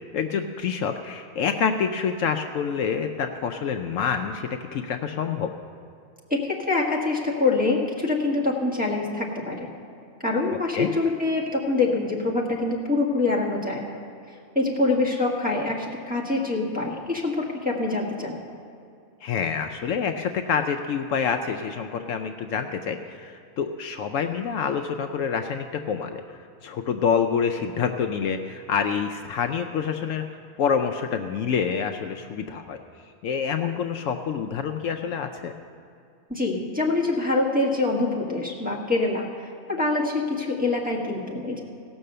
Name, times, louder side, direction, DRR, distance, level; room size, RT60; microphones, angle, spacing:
voice 1, 0.1-5.5 10.7-10.9 19.2-26.2 26.6-30.2 30.6-32.8 33.2-35.5, left 6 dB, 70° left, 6 dB, 0.9 m, -27 dB
voice 2, 6.3-9.7 10.2-14.0 14.5-18.4 36.3-41.6, left 3 dB, 5° right, -4 dB, 1.4 m, -25 dB
17.0 x 6.3 x 6.7 m, 2.5 s
omnidirectional pair, 1.5 m